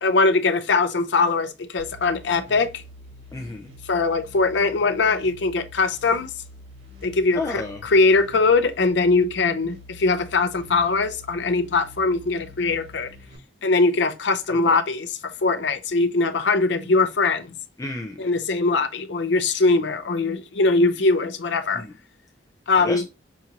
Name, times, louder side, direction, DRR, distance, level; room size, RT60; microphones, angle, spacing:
voice 1, 0.0-2.7 3.9-6.3 7.0-13.1 13.6-17.5 18.2-21.8 22.7-23.0, left 3 dB, 65° left, 0.6 m, -21 dB
sound 1, 1.8-13.4, left 1 dB, 85° right, 1.9 m, -46 dB
voice 2, 3.3-3.7 7.4-7.8 14.5-14.8 17.8-18.2 21.7-21.9 22.8-23.1, left 2 dB, 20° left, 0.4 m, -31 dB
5.8 x 2.6 x 2.8 m
head